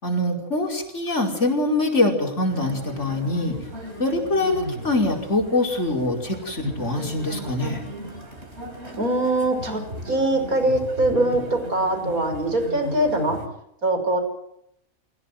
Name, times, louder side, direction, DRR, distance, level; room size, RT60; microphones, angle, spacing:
voice 1, 0.0-3.6 4.0-7.8, left 2 dB, 55° left, 1 dB, 5.6 m, -24 dB
sound 1, 2.5-13.5, right 1 dB, 50° right, 4.4 m, -36 dB
voice 2, 9.0-13.4 13.8-14.2, right 1 dB, 80° right, 6 dB, 6.6 m, -22 dB
27.0 x 18.0 x 9.4 m, 0.77 s
omnidirectional pair, 1.5 m